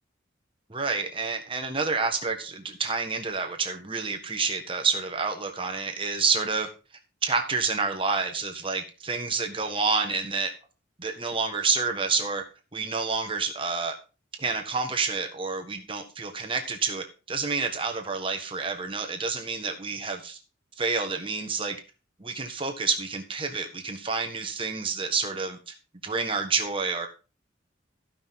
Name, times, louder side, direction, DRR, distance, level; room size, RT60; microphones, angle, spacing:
voice 1, 0.7-6.7 7.2-10.5 11.0-12.4 12.7-13.9 14.4-20.4 20.8-21.8 22.2-25.7 26.0-27.1, right 4 dB, 25° right, 4 dB, 1.4 m, -28 dB
15.0 x 5.9 x 3.7 m, 0.33 s
head